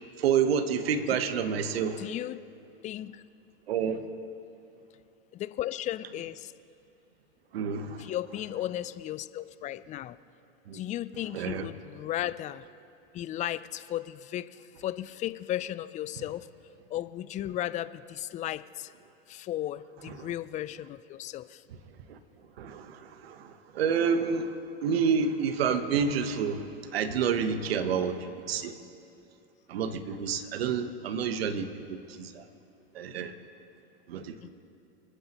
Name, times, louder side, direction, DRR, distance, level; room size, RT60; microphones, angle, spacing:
voice 1, 0.2-2.0 3.7-4.0 7.5-8.1 10.7-10.8 11.3-11.7 20.1-20.3 22.1-22.2 22.6-28.7 29.7-32.5 32.9-33.3 34.1-34.5, right 6 dB, 80° right, 10 dB, 1.1 m, -29 dB
voice 2, 2.0-2.4 2.8-3.2 5.3-6.5 8.0-10.2 10.7-12.7 13.1-16.5 16.9-18.9 19.3-21.6 34.4-34.5, left 13 dB, 25° left, 15 dB, 0.4 m, -35 dB
28.5 x 9.8 x 3.0 m, 2.7 s
hypercardioid pair, 105°, 30 cm